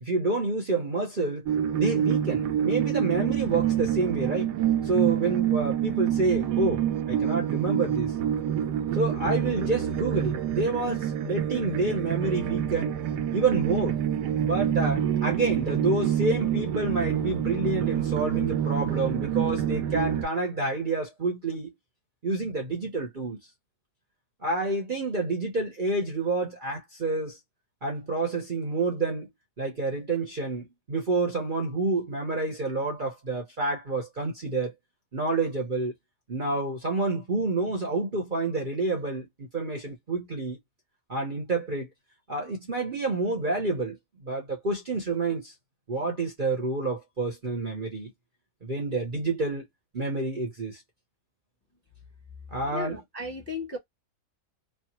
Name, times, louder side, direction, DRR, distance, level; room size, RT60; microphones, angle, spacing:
voice 1, 0.0-1.5 1.8-4.5 4.8-8.1 8.9-12.9 13.3-14.0 14.4-21.7 22.2-23.4 24.4-27.4 27.8-29.3 29.6-34.7 35.1-35.9 36.3-40.6 41.1-41.9 42.3-44.0 44.2-45.5 45.9-48.1 48.6-49.6 49.9-50.8 52.5-53.0, right 3 dB, 35° right, 0.9 m, -28 dB
sound 1, 1.5-20.2, right 10 dB, 90° right, 1.2 m, -27 dB
voice 2, 52.6-53.8, left 2 dB, 10° left, 0.8 m, -35 dB
3.4 x 2.1 x 2.9 m
omnidirectional pair, 1.7 m